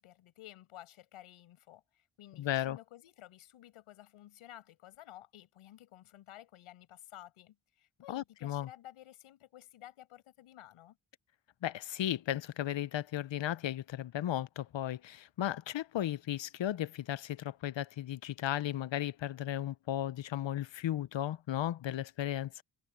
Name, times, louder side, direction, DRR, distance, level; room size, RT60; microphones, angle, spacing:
voice 1, 0.0-11.0, left 13 dB, 85° left, 6.2 m, -54 dB
voice 2, 2.4-2.8 8.1-8.7 11.6-22.6, left 12 dB, 65° left, 1.0 m, -35 dB
supercardioid pair, 40°, 49 cm